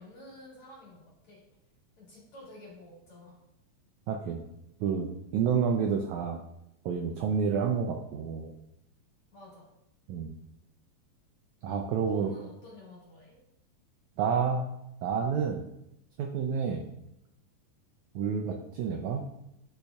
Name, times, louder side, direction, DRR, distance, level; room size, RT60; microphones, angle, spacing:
voice 1, 0.0-1.4 2.0-3.3 9.3-9.7 12.0-13.4, left 1 dB, 45° left, -5 dB, 2.6 m, -50 dB
voice 2, 4.1-4.4 4.8-6.4 6.8-8.5 10.1-10.3 11.6-12.3 14.2-14.7 15.0-15.7 16.2-16.9 18.1-19.2, right 6 dB, 85° right, 3 dB, 1.6 m, -29 dB
11.5 x 5.3 x 2.3 m, 0.83 s
omnidirectional pair, 4.0 m